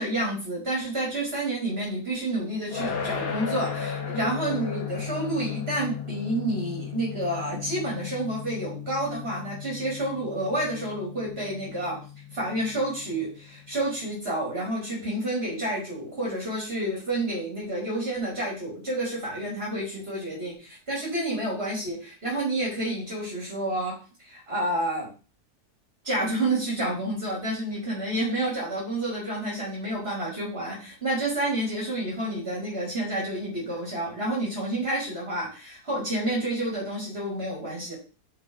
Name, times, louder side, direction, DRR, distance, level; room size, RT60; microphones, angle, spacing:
voice 1, 0.0-12.0 12.3-25.1 26.0-37.9, right 1 dB, 40° right, -5 dB, 2.8 m, -29 dB
sound 1, 2.7-13.7, left 7 dB, 65° left, 1.6 m, -36 dB
5.9 x 4.7 x 4.5 m, 0.35 s
omnidirectional pair, 1.7 m